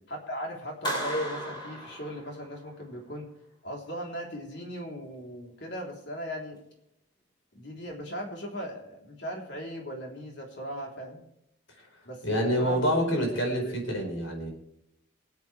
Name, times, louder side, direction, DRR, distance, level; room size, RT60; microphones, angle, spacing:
voice 1, 0.1-3.2 3.6-6.6 7.5-11.2 12.0-13.8, equal, 60° left, 0 dB, 3.6 m, -38 dB
Clapping, 0.8-2.7, equal, 25° left, 3.5 m, -35 dB
voice 2, 12.2-14.5, equal, 80° left, 2 dB, 4.8 m, -27 dB
24.0 x 8.6 x 3.4 m, 0.79 s
head